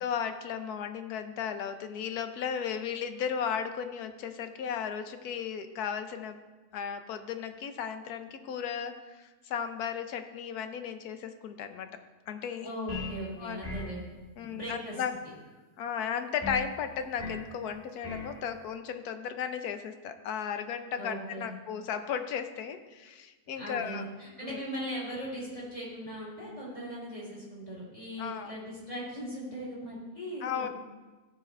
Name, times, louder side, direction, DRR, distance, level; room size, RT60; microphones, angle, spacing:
voice 1, 0.0-6.4 6.7-11.9 12.3-12.7 13.4-13.6 14.4-15.1 15.8-24.0 24.4-24.6 28.2-28.6 30.4-30.7, left 7 dB, 75° left, 8 dB, 1.2 m, -35 dB
voice 2, 12.6-14.1 14.4-15.0 21.0-21.5 23.6-30.7, equal, 25° left, -6 dB, 3.7 m, -39 dB
sound 1, 12.9-13.2 13.6-14.0 16.4-16.7 17.2-17.5 18.0-18.3, left 2 dB, 10° left, 1.6 m, -37 dB
14.5 x 4.9 x 4.3 m, 1.2 s
omnidirectional pair, 1.6 m